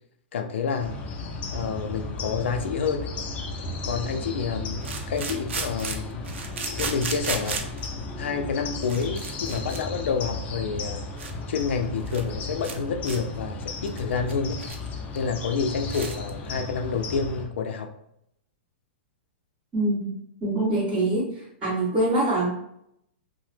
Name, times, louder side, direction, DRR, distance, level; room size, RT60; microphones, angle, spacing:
voice 1, 0.3-1.0 1.5-3.1 3.8-6.3 6.7-7.6 8.2-11.0 11.5-14.6 15.1-17.9, left 5 dB, 80° left, 5 dB, 0.4 m, -28 dB
sound 1, 0.8-17.4, left 2 dB, 25° left, 0.4 m, -35 dB
sound 2, 3.0-3.1 4.8-7.9 8.6-8.7 8.8-9.8 10.1-10.3 10.8-10.9 11.2-11.3 11.6-11.7 12.0-12.3 12.6-12.8 13.0-13.2 13.6-14.9 15.2-15.3 15.6-15.7 15.9-16.3, right 5 dB, 85° right, 0.5 m, -34 dB
voice 2, 19.7-20.1 20.4-22.5, right 2 dB, 20° right, -13 dB, 1.4 m, -24 dB
2.9 x 2.0 x 3.2 m, 0.74 s
hypercardioid pair, 150°, 6 cm